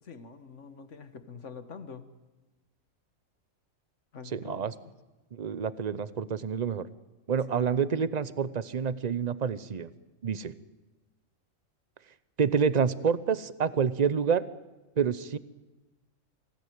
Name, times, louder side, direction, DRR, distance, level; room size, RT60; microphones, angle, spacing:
voice 1, 0.0-2.1 4.1-4.9 7.5-7.7, left 5 dB, 65° left, 10 dB, 1.8 m, -45 dB
voice 2, 4.3-4.7 5.3-6.9 7.3-9.9 10.2-10.5 12.4-14.4 15.0-15.4, right 6 dB, 35° right, 16 dB, 0.8 m, -28 dB
25.0 x 17.0 x 9.4 m, 1.2 s
omnidirectional pair, 1.4 m